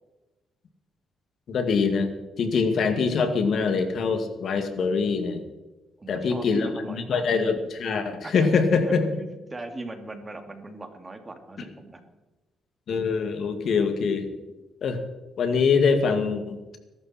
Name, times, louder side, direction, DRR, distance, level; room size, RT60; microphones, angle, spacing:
voice 1, 1.5-2.1 2.4-5.4 6.1-9.0 12.9-14.3 14.8-15.0 15.4-16.6, left 5 dB, 60° left, 6 dB, 2.2 m, -24 dB
voice 2, 6.0-7.4 8.2-12.0, right 2 dB, 25° right, 6 dB, 2.4 m, -40 dB
21.5 x 12.5 x 4.4 m, 1.1 s
cardioid pair, 90°, 0 cm